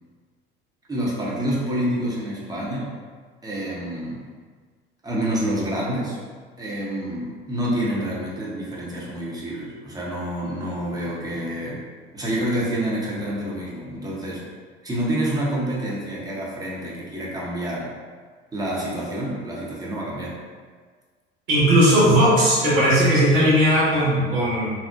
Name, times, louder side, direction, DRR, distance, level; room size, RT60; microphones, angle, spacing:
voice 1, 0.9-2.9 3.4-4.2 5.0-6.2 6.6-11.8 12.1-14.4 14.8-17.9 18.5-20.3, right 1 dB, 10° right, -6 dB, 0.6 m, -27 dB
voice 2, 21.5-24.7, equal, 60° right, -8 dB, 1.1 m, -17 dB
2.7 x 2.0 x 2.2 m, 1.6 s
figure-of-eight pair, 70°, 33 cm